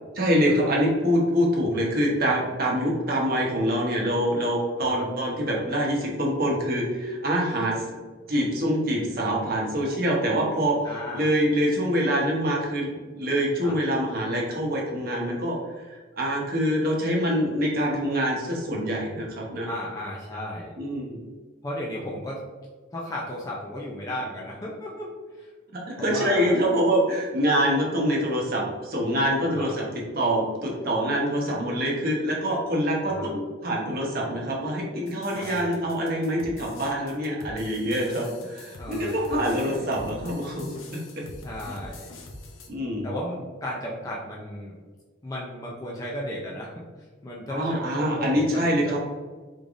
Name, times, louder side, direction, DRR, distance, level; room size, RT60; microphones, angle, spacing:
voice 1, 0.1-7.8 8.3-10.8 11.1-12.9 13.2-19.7 20.8-21.2 25.7-29.8 30.1-41.0 41.7-41.8 42.7-43.1 47.5-49.0, equal, 45° right, -2 dB, 0.9 m, -25 dB
voice 2, 10.8-11.3 13.6-13.8 19.7-20.8 21.6-22.4 22.9-25.5 26.0-26.5 29.4-29.8 33.1-33.3 35.3-35.8 38.8-39.8 41.4-42.1 43.0-44.8 45.2-49.0, left 1 dB, 20° left, -4 dB, 0.4 m, -35 dB
sound 1, 35.1-42.7, left 2 dB, 80° left, 0.6 m, -44 dB
3.7 x 3.3 x 2.5 m, 1.4 s
head